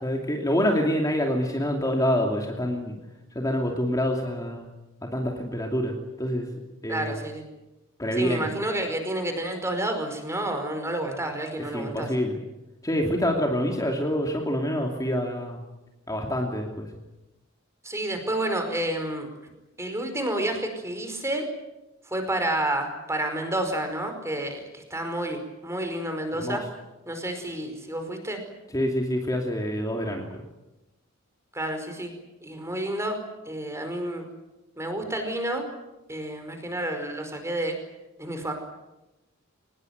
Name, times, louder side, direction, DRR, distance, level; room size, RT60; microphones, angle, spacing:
voice 1, 0.0-2.9 3.3-4.7 5.1-5.9 6.2-6.5 6.8-7.2 8.0-8.5 11.7-12.4 12.8-15.6 16.1-16.9 26.3-26.6 28.7-30.4, equal, 15° left, 1 dB, 2.8 m, -26 dB
voice 2, 6.9-7.4 8.2-12.1 17.8-19.3 19.8-21.5 22.1-26.6 27.1-28.4 31.5-32.1 32.4-33.2 33.4-34.3 34.8-35.6 36.1-37.8 38.2-38.5, right 1 dB, 15° right, 6 dB, 5.0 m, -30 dB
24.5 x 20.5 x 9.5 m, 0.99 s
head